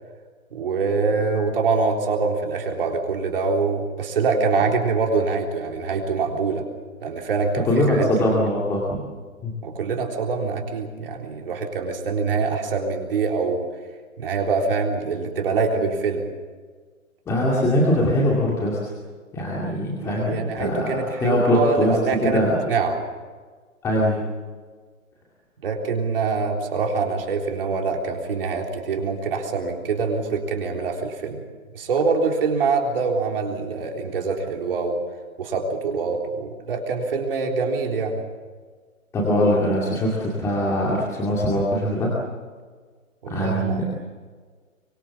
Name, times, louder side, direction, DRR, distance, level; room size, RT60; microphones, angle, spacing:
voice 1, 0.5-6.7 7.0-8.4 9.6-13.7 14.2-16.3 20.0-23.0 25.6-31.4 31.7-35.0 35.4-38.2 43.2-43.9, right 4 dB, 40° right, 2 dB, 3.7 m, -24 dB
voice 2, 7.7-9.0 9.4-9.5 17.3-18.9 19.3-22.5 23.8-24.2 39.1-42.1 43.3-43.9, left 1 dB, 5° left, -4 dB, 2.3 m, -22 dB
24.0 x 23.0 x 7.1 m, 1.5 s
hypercardioid pair, 160°, 42 cm